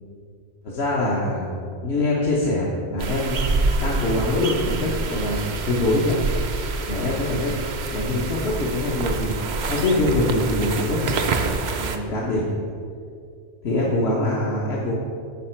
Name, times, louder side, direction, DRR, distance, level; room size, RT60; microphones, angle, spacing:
voice 1, 0.6-1.5 1.8-3.3 3.8-6.2 6.8-7.6 7.9-9.4 9.7-11.3 11.8-12.5 13.6-14.9, left 2 dB, 60° left, -4 dB, 1.2 m, -24 dB
sound 1, 3.0-12.0, right 3 dB, 50° right, 0.5 m, -27 dB
11.0 x 4.8 x 4.4 m, 2.4 s
omnidirectional pair, 1.3 m